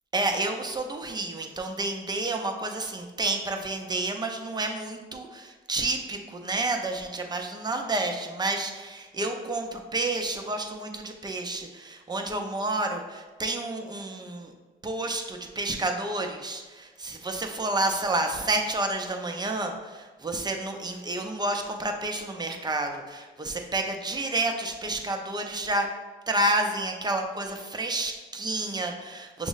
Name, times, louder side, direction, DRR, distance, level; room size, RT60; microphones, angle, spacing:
voice 1, 0.1-14.5 14.8-25.9 26.3-29.5, right 2 dB, 20° right, 3 dB, 0.6 m, -30 dB
5.9 x 2.0 x 3.9 m, 1.4 s
cardioid pair, 90°, 20 cm